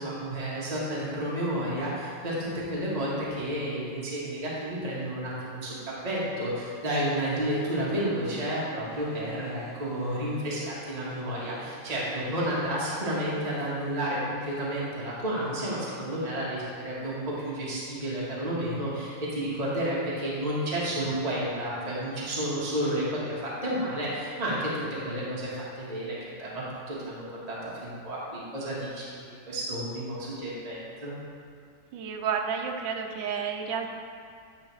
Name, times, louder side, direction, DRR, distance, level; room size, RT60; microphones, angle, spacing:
voice 1, 0.0-23.3 23.6-31.1, right 1 dB, 20° right, -7 dB, 1.4 m, -31 dB
sound 1, 8.2-14.0, right 2 dB, 45° right, 1.2 m, -51 dB
voice 2, 31.9-33.9, right 6 dB, 70° right, 3 dB, 1.2 m, -31 dB
10.5 x 5.5 x 3.2 m, 2.2 s
omnidirectional pair, 2.3 m